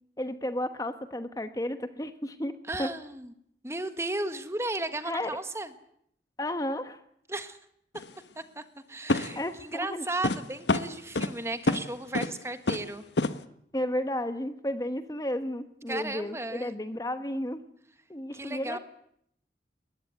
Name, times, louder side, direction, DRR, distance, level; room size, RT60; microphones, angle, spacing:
voice 1, 0.2-2.9 5.1-5.3 6.4-7.0 9.3-10.1 13.7-17.6 18.1-18.8, left 1 dB, 20° left, 10 dB, 1.0 m, -33 dB
voice 2, 2.7-3.3 3.6-5.7 7.3-7.6 8.3-8.6 8.9-13.0 15.9-16.7 18.3-18.8, right 2 dB, 15° right, 10 dB, 1.4 m, -35 dB
sound 1, 7.9-8.1 9.1-9.5 10.2-10.4 10.7-11.3 11.7-11.8 12.1-12.4 12.7-12.9 13.2-13.3, left 2 dB, 85° left, 1.2 m, -27 dB
22.0 x 20.5 x 9.4 m, 0.70 s
head